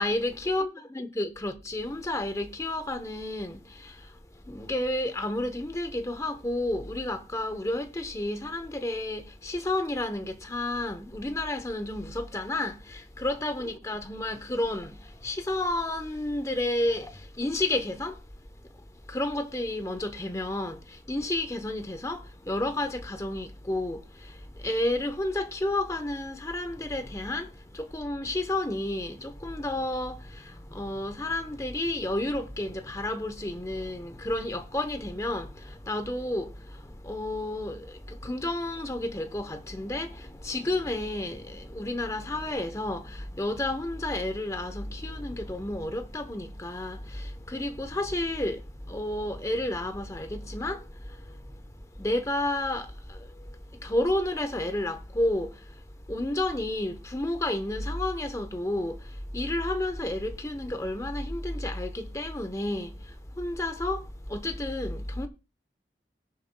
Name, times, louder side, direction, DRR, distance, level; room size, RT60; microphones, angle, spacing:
voice 1, 0.0-0.7 1.0-18.2 18.7-65.3, left 1 dB, 15° left, 0.8 m, -31 dB
19.5 x 7.2 x 2.2 m
head